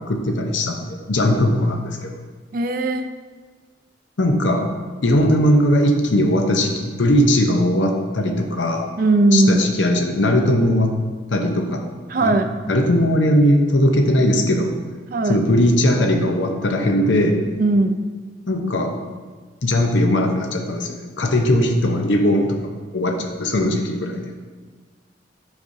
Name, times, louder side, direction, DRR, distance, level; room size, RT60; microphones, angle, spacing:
voice 1, 0.0-2.2 4.2-4.7 5.0-8.9 9.3-10.9 11.3-11.8 12.2-12.3 12.7-14.7 15.3-17.4 18.5-19.0 19.6-24.3, left 1 dB, 85° left, 4 dB, 0.7 m, -19 dB
voice 2, 2.5-3.1 9.0-9.7 12.1-12.5 15.1-15.4 17.6-18.0, right 2 dB, 50° right, 8 dB, 0.4 m, -18 dB
8.1 x 5.0 x 2.7 m, 1.4 s
head